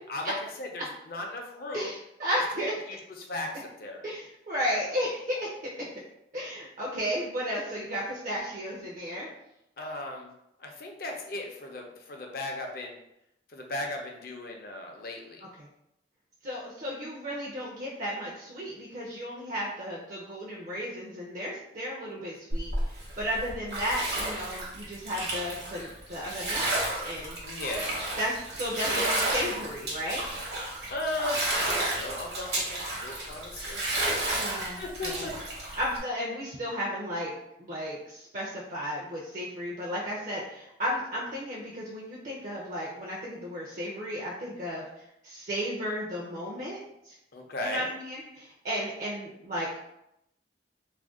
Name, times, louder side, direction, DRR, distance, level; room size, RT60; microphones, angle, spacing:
voice 1, 0.1-1.9 2.9-4.0 9.8-10.3 10.6-13.0 13.5-15.4 27.4-27.9 30.9-33.8 34.8-35.3 47.3-47.9, left 2 dB, 55° left, 1 dB, 0.5 m, -36 dB
voice 2, 1.7-2.7 4.0-5.5 5.8-5.9 6.3-9.3 15.6-15.7 16.4-26.7 27.0-27.4 28.2-30.3 34.3-35.3 35.7-37.3 37.6-46.8 47.0-47.1 47.6-49.8, equal, 45° right, -4 dB, 0.5 m, -34 dB
Bathtub (filling or washing), 22.5-36.0, right 1 dB, 65° right, 0.9 m, -32 dB
2.5 x 2.1 x 3.5 m, 0.82 s
head